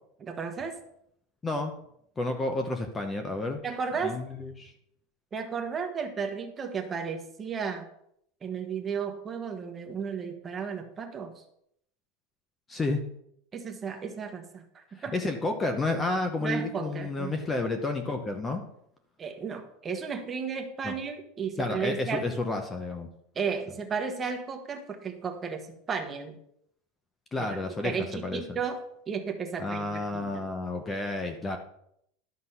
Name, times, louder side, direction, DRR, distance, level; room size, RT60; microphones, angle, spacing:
voice 1, 0.2-0.7 3.6-4.2 5.3-7.8 8.4-11.4 13.5-15.2 16.4-17.3 19.2-22.3 23.3-26.4 27.4-28.8 29.1-30.5, right 6 dB, 20° right, 4 dB, 1.2 m, -34 dB
voice 2, 1.4-1.7 2.2-3.6 4.0-4.7 12.7-13.0 14.9-18.6 20.8-20.9 21.6-23.1 27.3-28.4 29.6-31.6, left 2 dB, 15° left, 6 dB, 0.9 m, -31 dB
12.0 x 6.2 x 5.6 m, 0.72 s
supercardioid pair, 165°, 0 cm